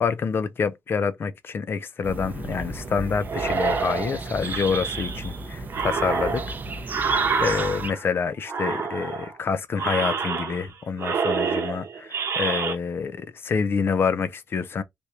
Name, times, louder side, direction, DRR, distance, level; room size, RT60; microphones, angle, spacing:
voice 1, 0.0-6.6 6.9-14.8, left 5 dB, 45° left, 0.4 m, -27 dB
sound 1, 2.0-7.9, right 2 dB, 35° right, 0.5 m, -34 dB
sound 2, 3.3-5.4 5.7-8.1 8.5-9.4 9.7-10.7 11.0-12.7, right 5 dB, 55° right, 0.8 m, -27 dB
3.4 x 2.5 x 2.8 m
wide cardioid pair, 145°, 5 cm